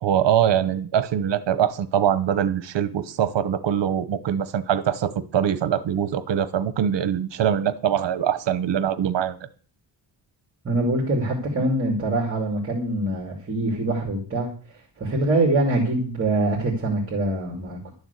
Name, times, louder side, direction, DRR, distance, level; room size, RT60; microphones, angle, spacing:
voice 1, 0.0-9.4, right 9 dB, 70° right, 14 dB, 1.1 m, -23 dB
voice 2, 10.6-17.9, right 2 dB, 30° right, 0 dB, 2.6 m, -24 dB
12.0 x 7.1 x 8.2 m, 0.40 s
wide cardioid pair, 175°, 44 cm